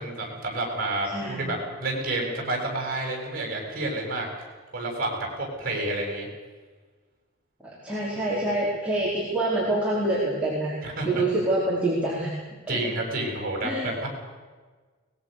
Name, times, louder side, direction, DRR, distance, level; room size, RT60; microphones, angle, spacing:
voice 1, 0.0-4.3 4.7-6.3 10.8-11.2 12.7-14.1, right 2 dB, 45° right, 1 dB, 7.7 m, -29 dB
voice 2, 1.0-1.5 7.8-10.7 11.0-12.3 12.7-12.8 13.6-13.9, right 1 dB, 5° right, -7 dB, 4.7 m, -26 dB
23.5 x 21.0 x 6.8 m, 1.4 s
head